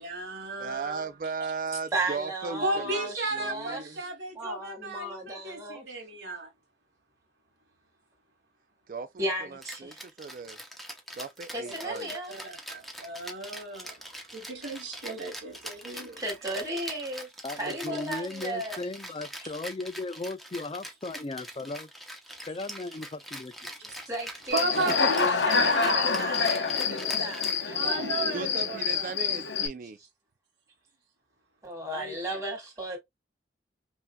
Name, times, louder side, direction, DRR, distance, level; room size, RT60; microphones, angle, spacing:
voice 1, 0.0-1.1 2.6-6.5 11.6-11.9 12.3-14.0 14.3-16.2 17.6-18.0 24.5-26.1 27.6-29.1 31.9-32.4, right 2 dB, 75° right, 1.9 m, -34 dB
voice 2, 0.6-3.1 3.3-4.0 8.9-10.6 11.1-12.1 28.3-30.0, right 5 dB, 50° right, 0.3 m, -37 dB
voice 3, 1.9-3.8 4.4-5.9 9.2-10.0 11.5-12.3 15.9-17.3 17.6-18.8 24.1-28.1 31.6-33.0, right 1 dB, 15° right, 2.1 m, -35 dB
Rattle (instrument), 9.6-28.1, equal, ahead, 0.8 m, -43 dB
voice 4, 17.4-21.9 22.5-23.5 23.8-23.9 24.9-25.3, left 2 dB, 30° left, 0.4 m, -37 dB
Human voice / Cricket, 24.5-29.7, left 5 dB, 80° left, 0.8 m, -27 dB
5.5 x 2.7 x 2.2 m
head